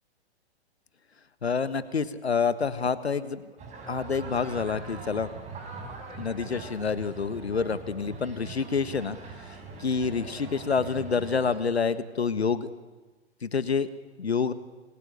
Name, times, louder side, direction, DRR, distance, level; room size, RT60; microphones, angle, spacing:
voice 1, 1.4-3.4 3.9-5.3 6.2-9.2 9.8-12.7 13.4-13.9 14.2-14.5, left 5 dB, 70° left, 14 dB, 1.6 m, -27 dB
sound 1, 3.6-11.6, right 4 dB, 20° right, 6.2 m, -42 dB
27.5 x 21.0 x 9.9 m, 1.3 s
figure-of-eight pair, 110°, 33 cm